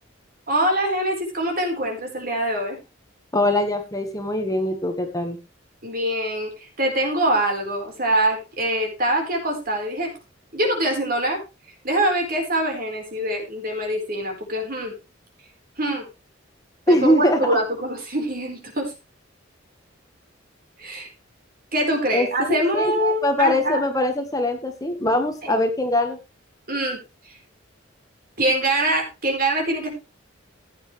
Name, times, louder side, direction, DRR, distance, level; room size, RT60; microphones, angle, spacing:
voice 1, 0.5-2.8 5.8-10.1 10.5-11.4 11.8-14.9 15.8-16.0 16.9-18.9 20.8-21.1 21.7-23.8 25.4-25.6 26.7-27.0 27.2-27.3 28.4-29.9, right 1 dB, 45° right, 2 dB, 4.5 m, -24 dB
voice 2, 3.3-5.4 16.9-17.5 22.1-26.2, left 1 dB, 20° left, 5 dB, 1.5 m, -22 dB
15.5 x 9.0 x 3.3 m, 0.28 s
head